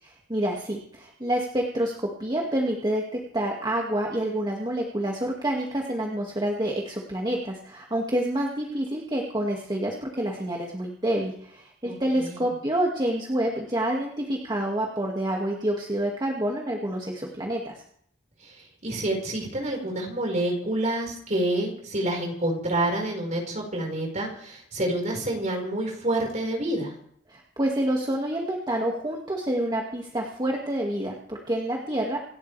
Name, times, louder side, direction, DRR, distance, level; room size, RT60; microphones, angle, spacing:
voice 1, 0.0-17.8 27.3-32.2, right 1 dB, 25° right, -1 dB, 2.1 m, -28 dB
voice 2, 11.8-12.5 18.4-18.6 18.8-26.9, right 1 dB, 40° right, 1 dB, 4.9 m, -28 dB
28.0 x 12.5 x 3.4 m, 0.67 s
head